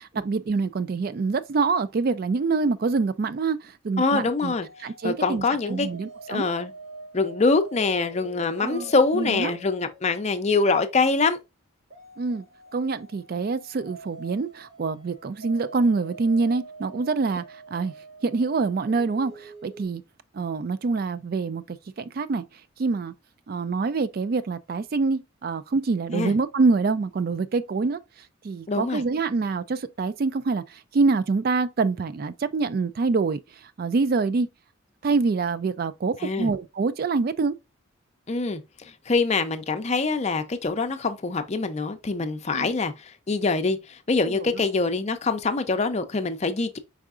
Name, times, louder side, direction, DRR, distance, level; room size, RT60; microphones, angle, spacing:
voice 1, 0.0-4.5 4.8-6.5 8.6-9.6 12.2-12.4 12.7-17.9 18.2-20.0 20.3-22.4 22.8-23.1 23.5-28.0 28.4-34.5 35.0-37.5 42.5-42.7 44.3-44.6, right 4 dB, 50° right, 0.4 m, -26 dB
voice 2, 4.0-4.7 5.0-5.9 6.3-6.7 7.1-11.4 26.1-26.3 28.7-29.0 36.2-36.5 38.3-38.6 39.1-46.8, left 3 dB, 35° left, 0.6 m, -24 dB
sound 1, 4.5-10.7 11.9-19.9, equal, 75° right, 2.4 m, -45 dB
4.8 x 4.5 x 2.4 m
head